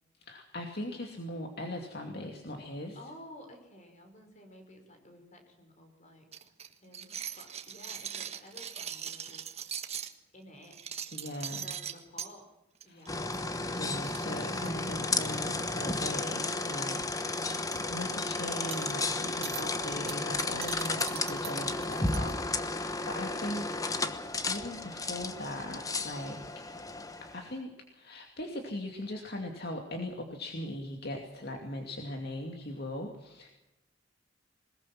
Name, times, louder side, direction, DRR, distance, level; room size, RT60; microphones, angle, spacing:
voice 1, 0.2-3.0 11.1-11.7 12.9-13.1 13.6-17.6 17.9-23.7 24.5-26.4 27.2-33.5, left 1 dB, 55° left, 3 dB, 2.5 m, -39 dB
voice 2, 2.9-6.3 6.8-9.5 9.7-9.8 10.3-10.8 11.3-12.5 12.8-13.3, left 1 dB, 40° left, 5 dB, 5.3 m, -53 dB
sound 1, 6.3-10.1 10.6-12.3 12.8-13.1 13.3-13.5 13.7-13.8 14.0-15.4 16.2-16.5 16.8-17.0 17.4-17.8 18.7-18.9 19.4-19.6 20.1-22.3, right 8 dB, 35° right, 1.5 m, -40 dB
sound 2, 13.1-27.5, left 3 dB, 20° left, 1.2 m, -33 dB
21.5 x 21.0 x 6.0 m, 0.93 s
head